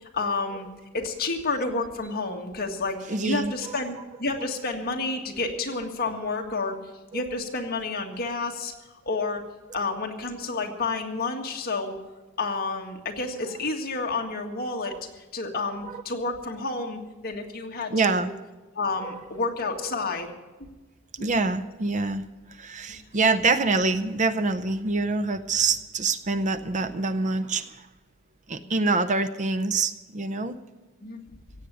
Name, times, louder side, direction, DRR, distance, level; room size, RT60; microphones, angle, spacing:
voice 1, 0.1-0.7 0.9-8.7 9.1-9.4 9.7-12.0 12.4-15.0 15.3-18.3 18.8-20.3 20.6-20.7 21.2-21.3 22.9-23.0 28.6-28.7 31.0-31.2, left 3 dB, 45° left, 2 dB, 1.8 m, -30 dB
voice 2, 3.1-3.8 5.5-5.6 7.1-7.2 14.8-15.0 17.9-18.3 19.0-19.1 19.8-19.9 21.2-27.9 28.5-30.6, right 3 dB, 35° right, 12 dB, 0.6 m, -26 dB
16.5 x 8.1 x 8.8 m, 1.2 s
head